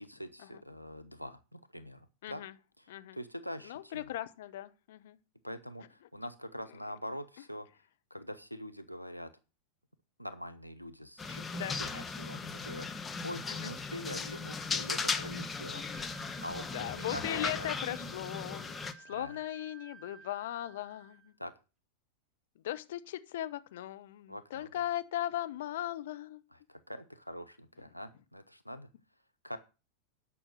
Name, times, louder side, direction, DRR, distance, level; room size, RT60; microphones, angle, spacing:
voice 1, 0.0-2.4 2.8-4.1 5.4-7.7 8.1-9.3 10.2-15.9 16.4-17.7 19.1-19.4 21.4-21.5 24.3-24.8 26.5-28.9 29.4-29.6, equal, 90° left, 0.7 m, -44 dB
voice 2, 2.2-2.5 2.9-3.2 3.6-5.2 11.5-11.8 13.5-13.7 16.7-21.3 22.6-26.4, left 13 dB, 55° left, 0.8 m, -38 dB
sound 1, 11.2-18.9, left 4 dB, 15° left, 1.0 m, -37 dB
Wind instrument woodwind instrument, 15.9-21.4, right 5 dB, ahead, 1.4 m, -55 dB
10.0 x 6.2 x 6.3 m
figure-of-eight pair, 90°, 0 cm